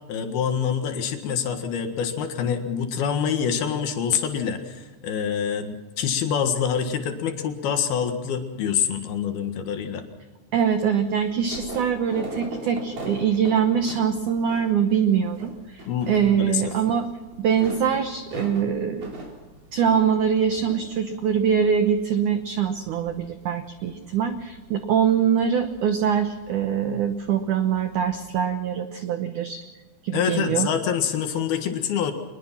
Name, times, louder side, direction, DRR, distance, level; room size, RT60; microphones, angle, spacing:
voice 1, 0.1-10.0 15.9-16.1 16.4-16.7 30.1-32.1, left 7 dB, 65° left, 6 dB, 3.3 m, -26 dB
voice 2, 10.5-17.1 17.4-19.1 19.7-29.6 30.0-30.7, right 7 dB, 80° right, 8 dB, 1.7 m, -23 dB
sound 1, 10.6-28.4, right 2 dB, 45° right, 5.1 m, -42 dB
24.0 x 21.0 x 5.9 m, 1.2 s
omnidirectional pair, 5.1 m